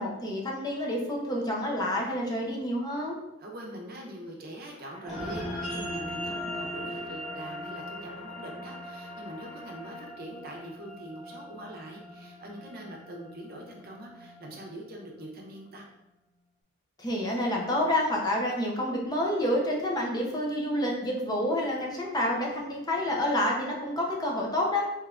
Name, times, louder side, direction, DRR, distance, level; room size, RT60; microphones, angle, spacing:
voice 1, 0.0-3.2 17.0-24.8, left 1 dB, 20° left, -2 dB, 0.6 m, -28 dB
voice 2, 3.4-15.9, right 1 dB, 50° right, 0 dB, 0.7 m, -43 dB
sound 1, 4.7-10.0, left 5 dB, 80° left, 0.5 m, -49 dB
sound 2, 5.0-15.7, equal, ahead, 1.1 m, -40 dB
3.4 x 3.0 x 2.4 m, 0.96 s
head